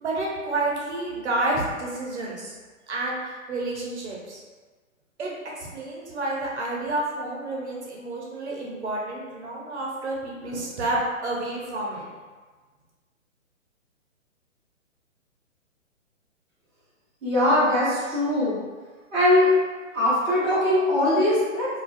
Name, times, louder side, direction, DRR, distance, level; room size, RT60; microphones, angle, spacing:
voice 1, 0.0-2.5 2.9-4.4 5.2-12.1, right 2 dB, 55° right, -3 dB, 0.7 m, -30 dB
voice 2, 17.2-18.6 19.1-19.5 19.9-21.7, left 1 dB, 10° right, -15 dB, 0.6 m, -21 dB
2.3 x 2.2 x 2.4 m, 1.4 s
figure-of-eight pair, 130°, 40 cm